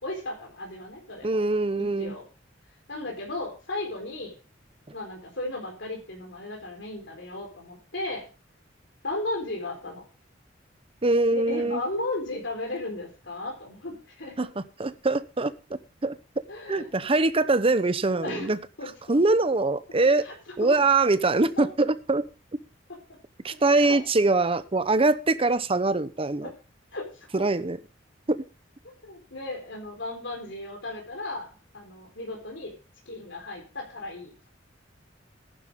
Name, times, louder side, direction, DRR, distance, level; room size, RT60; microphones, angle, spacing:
voice 1, 0.0-1.4 1.8-2.2 2.9-4.4 4.9-8.2 9.0-10.0 11.3-14.5 16.5-17.1 18.2-18.5 18.8-19.2 20.2-20.3 20.6-20.8 21.6-21.7 23.7-24.0 26.4-26.5 26.9-27.5 29.0-32.8 33.1-34.5, left 2 dB, 70° left, 0 dB, 4.3 m, -35 dB
voice 2, 1.2-2.1 11.0-11.8 14.4-15.5 16.0-16.2 16.7-18.6 19.1-20.3 20.6-22.2 23.4-26.5 27.3-27.8 28.3-28.4, right 3 dB, 30° right, 13 dB, 0.8 m, -23 dB
14.0 x 11.0 x 3.7 m, 0.33 s
head